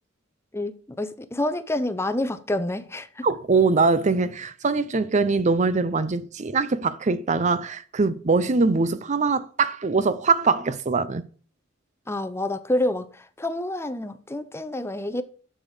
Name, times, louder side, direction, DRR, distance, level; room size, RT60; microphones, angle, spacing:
voice 1, 0.5-3.3 12.1-15.2, left 1 dB, 15° left, 0.6 m, -28 dB
voice 2, 3.2-11.2, right 4 dB, 35° right, 0.6 m, -22 dB
7.4 x 7.1 x 6.4 m
head